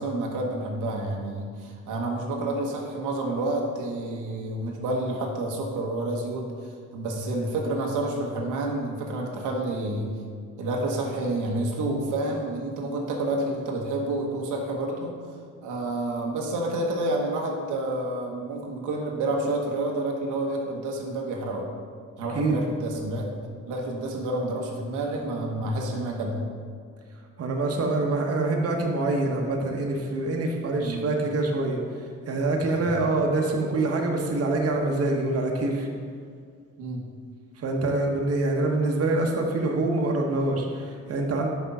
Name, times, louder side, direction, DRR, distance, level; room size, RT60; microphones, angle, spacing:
voice 1, 0.0-10.2 10.6-15.2 15.6-21.7 22.2-23.3 23.7-26.4 30.8-31.1 36.8-37.1, right 2 dB, 90° right, 0 dB, 1.1 m, -29 dB
voice 2, 27.4-31.8 32.3-35.9 37.6-41.5, right 2 dB, 50° right, 1 dB, 1.1 m, -25 dB
5.9 x 5.3 x 5.4 m, 2.1 s
cardioid pair, 90°, 30 cm